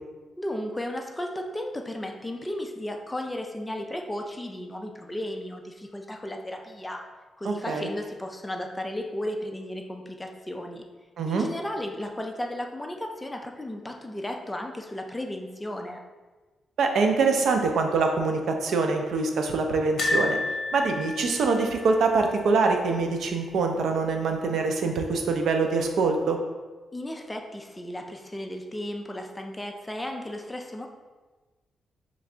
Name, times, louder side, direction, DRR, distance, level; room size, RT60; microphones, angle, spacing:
voice 1, 0.4-7.0 7.4-10.8 11.2-16.0 26.9-30.9, left 1 dB, 10° left, 3 dB, 0.3 m, -34 dB
voice 2, 7.4-7.9 11.2-11.4 16.8-20.4 20.7-26.4, right 4 dB, 75° right, 4 dB, 0.5 m, -24 dB
sound 1, 20.0-23.0 23.3-23.5 23.8-23.9 25.1-25.6 26.1-26.2, left 2 dB, 50° left, 0.8 m, -31 dB
3.4 x 3.1 x 3.8 m, 1.3 s
wide cardioid pair, 145°, 0 cm